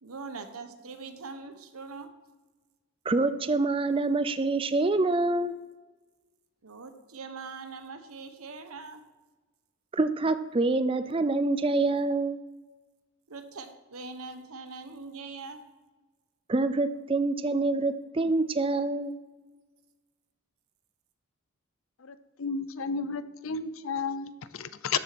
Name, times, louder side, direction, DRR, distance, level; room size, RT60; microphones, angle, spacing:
voice 1, 0.0-2.1 6.6-9.0 13.3-15.6, right 4 dB, 85° right, 1.1 m, -42 dB
voice 2, 3.1-5.5 9.9-12.4 16.5-19.1, right 3 dB, 25° right, 0.4 m, -26 dB
voice 3, 22.1-25.0, left 5 dB, 70° left, 0.6 m, -33 dB
13.0 x 7.5 x 4.2 m
head